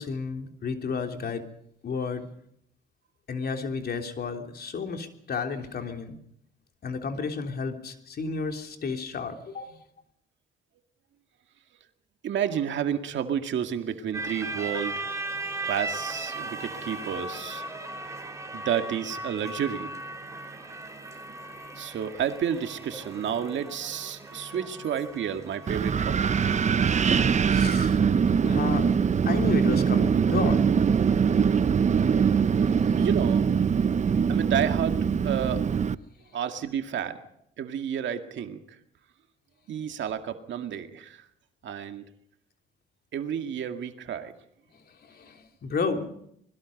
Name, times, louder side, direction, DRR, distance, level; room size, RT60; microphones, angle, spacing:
voice 1, 0.0-1.4 1.8-2.3 3.3-6.2 6.8-9.8 27.5-28.0 28.5-28.9 29.2-30.6 31.1-31.2 32.7-32.8 45.0-46.1, left 4 dB, 50° left, 5 dB, 3.3 m, -32 dB
voice 2, 12.2-15.1 15.6-17.6 18.5-19.9 21.8-26.3 33.0-33.5 34.3-35.6 36.3-37.2 37.6-38.8 39.7-41.3 41.6-42.0 43.1-44.3, right 8 dB, 70° right, 7 dB, 2.1 m, -31 dB
sound 1, 14.1-26.7, right 2 dB, 15° right, 4.5 m, -37 dB
Wind, 25.7-35.9, right 6 dB, 35° right, 0.7 m, -23 dB
26.0 x 21.0 x 5.3 m, 0.71 s
cardioid pair, 90°, 20 cm